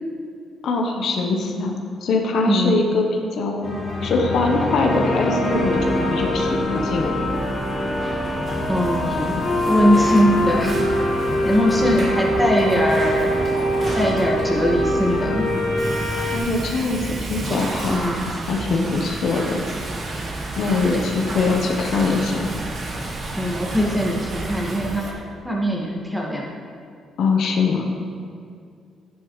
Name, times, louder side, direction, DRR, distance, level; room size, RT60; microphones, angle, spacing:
voice 1, 0.6-1.7 2.0-3.1 3.3-3.8 4.0-7.1 11.7-12.0 16.3-17.0 17.3-18.0 18.5-19.6 20.6-22.6 27.2-27.9, left 3 dB, 70° left, 1 dB, 1.2 m, -22 dB
voice 2, 2.4-2.8 8.7-9.4 9.7-10.8 11.4-13.3 13.9-15.5 17.9-18.3 18.7-18.9 20.8-21.0 23.4-25.1 25.4-26.4, equal, 5° right, -2 dB, 2.1 m, -21 dB
sound 1, 3.6-16.4, left 1 dB, 45° left, 2.0 m, -23 dB
sound 2, 5.5-25.0, right 2 dB, 25° right, 0.5 m, -33 dB
Water / Toilet flush, 7.6-25.1, right 2 dB, 50° right, 1.7 m, -34 dB
11.0 x 10.5 x 3.3 m, 2.3 s
cardioid pair, 90°, 0 cm